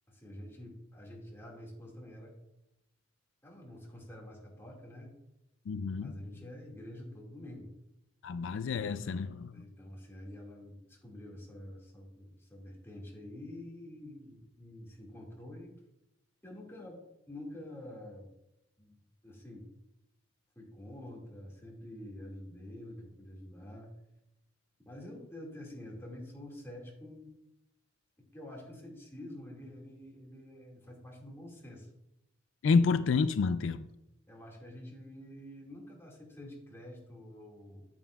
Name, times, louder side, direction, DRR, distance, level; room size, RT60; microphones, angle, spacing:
voice 1, 0.1-2.3 3.4-5.1 6.0-7.7 9.5-15.7 16.4-17.0 17.3-18.3 18.8-19.6 20.6-23.9 24.9-27.3 28.3-31.9 34.3-37.9, left 1 dB, 15° left, -2 dB, 2.1 m, -47 dB
voice 2, 5.7-6.1 8.2-9.5 32.6-33.8, left 4 dB, 80° left, 12 dB, 0.3 m, -29 dB
9.0 x 8.7 x 2.4 m, 0.90 s
head